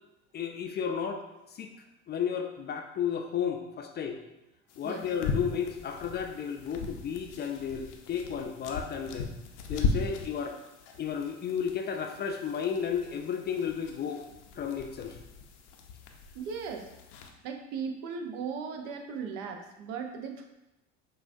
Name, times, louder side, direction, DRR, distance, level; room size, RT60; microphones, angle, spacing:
voice 1, 0.3-1.2 1.5-1.7 2.1-4.2 4.8-9.3 9.7-10.6 11.0-14.3 14.5-15.2, left 7 dB, 30° left, 4 dB, 0.4 m, -33 dB
sound 1, 4.7-17.3, left 4 dB, 75° left, 0.6 m, -38 dB
voice 2, 16.3-16.9 17.4-20.4, right 6 dB, 65° right, 4 dB, 0.7 m, -37 dB
6.1 x 2.4 x 2.6 m, 0.94 s
hypercardioid pair, 70°, 35 cm